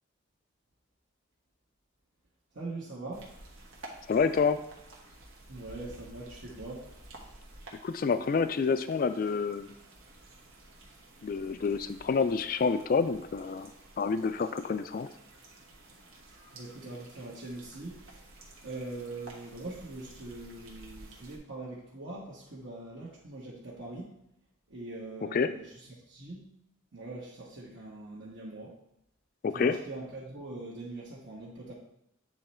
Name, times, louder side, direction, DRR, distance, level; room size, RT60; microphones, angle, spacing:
voice 1, 2.5-3.3 5.5-6.9 16.5-18.2 18.6-24.1 24.7-26.5 26.9-28.8 29.5-31.7, right 2 dB, 65° right, -8 dB, 1.4 m, -42 dB
sound 1, 3.1-21.4, right 2 dB, 90° right, 1.5 m, -52 dB
voice 2, 4.1-4.6 7.8-9.7 11.2-13.7 14.0-15.1 25.3-25.5 29.4-29.8, left 5 dB, 45° left, 11 dB, 0.3 m, -28 dB
8.8 x 3.2 x 4.3 m, 0.80 s
head